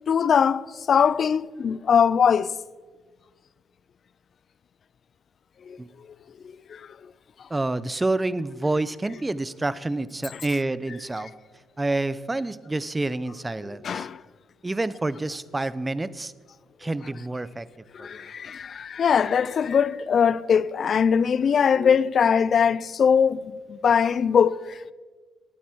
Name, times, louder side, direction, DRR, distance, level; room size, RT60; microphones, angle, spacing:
voice 1, 0.1-2.5 5.7-5.8 6.4-6.9 10.3-10.4 13.8-14.2 17.9-24.9, left 7 dB, 55° left, 0.4 m, -21 dB
voice 2, 7.5-11.3 11.8-14.1 14.6-16.3 16.8-17.7 18.0-18.2, right 2 dB, 15° right, 0.6 m, -28 dB
19.5 x 9.1 x 4.5 m
cardioid pair, 90°, 0 cm